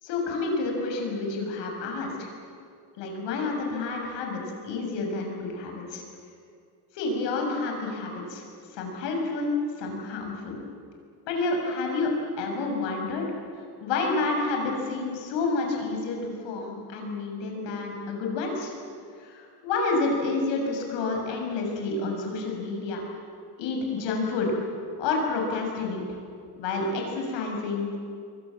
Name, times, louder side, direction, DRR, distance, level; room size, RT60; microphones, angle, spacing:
voice 1, 0.0-2.3 3.0-6.0 6.9-8.4 8.7-10.6 11.2-13.3 13.8-18.7 19.2-23.0 23.6-24.5 25.0-26.0 26.6-28.0, left 3 dB, 85° left, 1 dB, 6.6 m, -29 dB
27.5 x 23.0 x 7.6 m, 2.3 s
cardioid pair, 160°, 42 cm